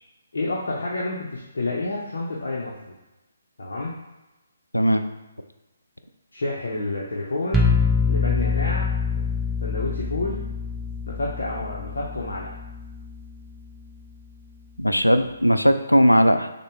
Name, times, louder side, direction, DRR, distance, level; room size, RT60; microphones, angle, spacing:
voice 1, 0.3-2.9 3.6-3.9 6.3-7.7 8.1-8.9 9.6-10.4 11.1-12.5, left 2 dB, 55° left, -4 dB, 0.7 m, -29 dB
voice 2, 4.7-5.1 14.8-16.5, equal, 85° left, 8 dB, 0.4 m, -18 dB
sound 1, 7.5-13.3, left 4 dB, 5° right, 0.4 m, -25 dB
6.4 x 2.2 x 3.4 m, 1.0 s
figure-of-eight pair, 140°, 0 cm